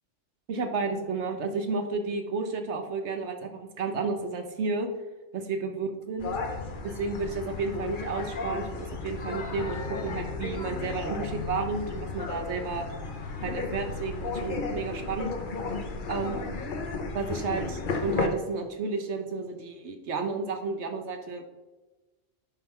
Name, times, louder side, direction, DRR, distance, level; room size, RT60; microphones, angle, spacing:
voice 1, 0.5-4.9 5.3-6.3 6.8-12.8 13.4-15.3 16.1-16.4 17.1-21.4, right 4 dB, 65° right, 5 dB, 1.2 m, -32 dB
sound 1, 6.2-18.3, left 4 dB, 45° left, 0.9 m, -34 dB
10.5 x 3.9 x 4.4 m, 1.2 s
omnidirectional pair, 1.3 m